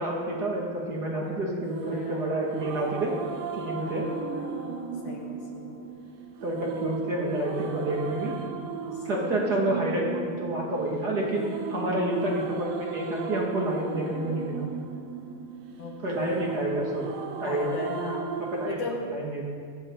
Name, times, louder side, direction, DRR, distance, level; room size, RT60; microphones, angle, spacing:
voice 1, 0.0-3.1 3.5-4.1 6.4-8.3 9.0-14.7 16.0-17.1 17.4-17.7 18.4-18.8 19.1-19.4, right 1 dB, 30° right, -3 dB, 2.3 m, -29 dB
voice 2, 1.2-1.6 1.9-2.8 3.7-4.8 5.0-5.8 8.9-9.5 11.8-12.1 15.8-16.8 17.4-18.3 18.6-19.1, left 4 dB, 60° left, 1 dB, 2.2 m, -38 dB
sound 1, 1.6-18.7, right 6 dB, 75° right, 3.0 m, -36 dB
19.0 x 14.0 x 4.1 m, 2.1 s
omnidirectional pair, 4.6 m